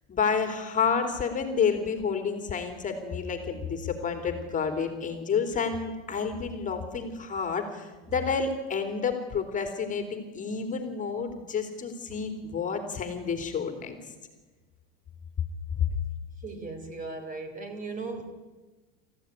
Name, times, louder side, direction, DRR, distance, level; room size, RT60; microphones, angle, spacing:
voice 1, 0.1-14.1 15.7-15.8, left 6 dB, 25° left, 6 dB, 3.2 m, -30 dB
voice 2, 16.4-18.3, right 3 dB, 25° right, 8 dB, 4.1 m, -37 dB
27.5 x 15.0 x 9.8 m, 1.2 s
supercardioid pair, 135°, 30 cm